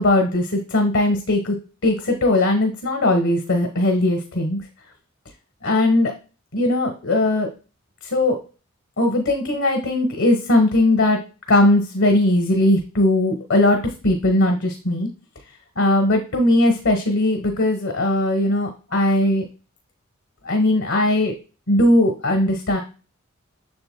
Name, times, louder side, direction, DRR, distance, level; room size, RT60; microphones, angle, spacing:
voice 1, 0.0-1.6 1.8-4.6 5.6-6.2 6.5-7.5 8.0-8.4 9.0-11.2 11.5-15.1 15.8-19.4 20.4-21.3 21.7-22.8, left 1 dB, 85° left, 4 dB, 1.1 m, -19 dB
7.8 x 6.6 x 2.2 m, 0.35 s
head